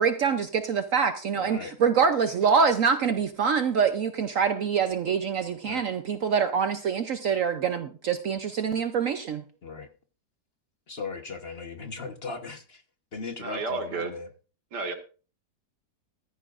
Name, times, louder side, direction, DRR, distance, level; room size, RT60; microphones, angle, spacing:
voice 1, 0.0-9.4, right 6 dB, 60° right, 1.0 m, -25 dB
voice 2, 1.4-1.7 5.6-5.8 9.6-9.9 10.9-12.8 13.1-14.3, left 4 dB, 40° left, 1.2 m, -38 dB
voice 3, 13.4-14.1 14.7-14.9, right 3 dB, 80° right, 2.3 m, -31 dB
14.5 x 13.0 x 2.5 m
omnidirectional pair, 1.8 m